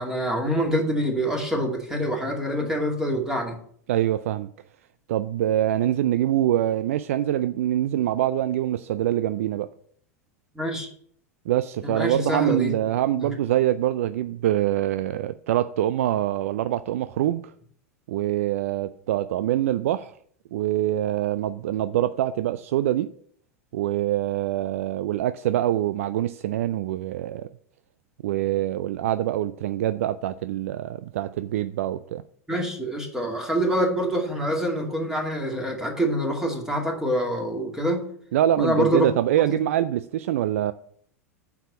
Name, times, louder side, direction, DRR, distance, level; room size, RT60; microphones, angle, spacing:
voice 1, 0.0-3.6 10.5-10.9 11.8-12.7 13.2-13.3 32.5-38.1 38.6-39.1 39.5-39.6, equal, 5° right, 2.4 m, -26 dB
voice 2, 3.9-4.5 5.1-9.7 11.5-17.4 18.1-20.1 20.5-23.1 23.7-27.5 28.2-32.2 38.3-40.7, right 12 dB, 60° right, 0.4 m, -24 dB
8.9 x 4.8 x 7.0 m
figure-of-eight pair, 90°, 8 cm